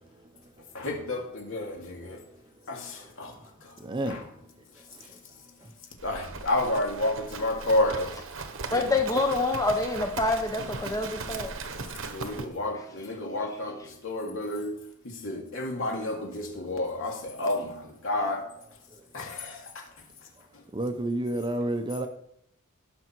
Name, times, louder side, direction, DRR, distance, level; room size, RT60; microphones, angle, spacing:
voice 1, 0.7-2.2 2.7-3.8 4.1-4.2 6.0-8.2 8.7-8.9 11.6-18.5 19.1-19.9 20.5-20.6, left 1 dB, 65° left, 2.8 m, -31 dB
voice 2, 3.8-4.2 4.9-5.2 5.6-5.7 14.2-14.3 18.9-19.0 20.7-22.1, right 1 dB, 20° right, 0.8 m, -31 dB
Livestock farm animals working animals, 6.0-12.5, right 4 dB, 65° right, 1.2 m, -38 dB
voice 3, 8.7-11.5, left 2 dB, 15° left, 0.9 m, -26 dB
17.5 x 6.3 x 4.7 m
head